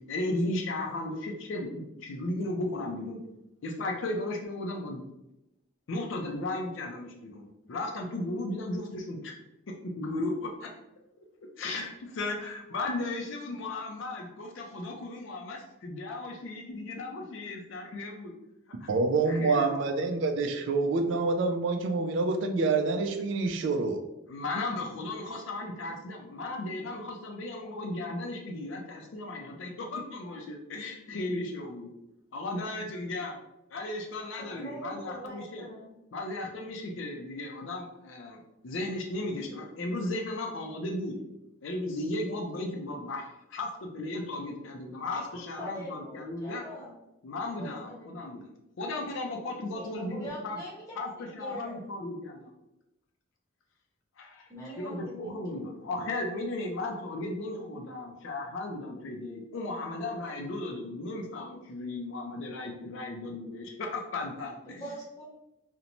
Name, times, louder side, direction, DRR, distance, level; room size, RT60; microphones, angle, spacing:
voice 1, 0.1-3.2 3.6-5.0 5.9-9.3 10.0-10.7 11.6-18.3 18.8-18.9 19.3-19.9 24.3-31.9 32.3-33.4 33.7-35.7 36.1-41.2 41.6-46.6 47.2-48.5 48.8-50.6 51.0-52.5 54.2-54.5 54.8-64.8, left 2 dB, 65° left, 2 dB, 0.4 m, -35 dB
voice 2, 18.9-24.0, right 3 dB, 60° right, 6 dB, 0.3 m, -27 dB
voice 3, 34.4-35.9 45.3-46.9 47.6-48.2 49.7-51.8 54.5-55.5 64.7-65.2, equal, 15° left, -6 dB, 0.8 m, -43 dB
2.6 x 2.1 x 2.9 m, 0.90 s
head